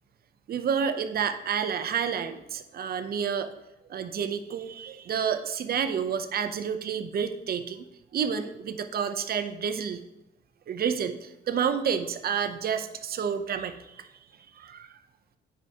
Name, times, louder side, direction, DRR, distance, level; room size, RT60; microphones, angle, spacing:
voice 1, 0.5-3.5 3.9-7.8 8.1-10.0 10.7-14.1 14.6-14.9, right 7 dB, 50° right, 9 dB, 0.6 m, -29 dB
9.4 x 4.7 x 2.9 m, 0.94 s
cardioid pair, 90°, 20 cm